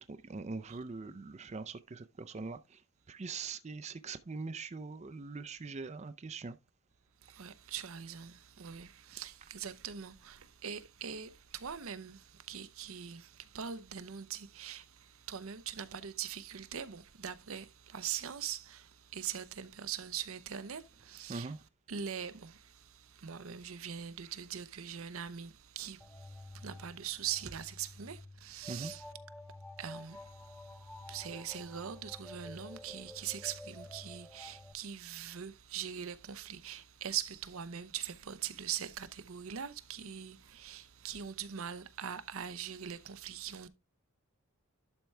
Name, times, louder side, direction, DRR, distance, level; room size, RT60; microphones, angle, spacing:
voice 1, 0.0-2.8 3.1-6.6 21.3-21.6 28.7-28.9, right 4 dB, 30° right, 0.4 m, -42 dB
voice 2, 7.2-21.5 21.9-22.7 23.1-26.0 26.5-29.0 29.8-30.2 31.1-43.7, right 8 dB, 75° right, 0.7 m, -42 dB
sound 1, 26.0-34.7, left 1 dB, 5° left, 0.7 m, -50 dB
11.5 x 4.5 x 3.2 m
head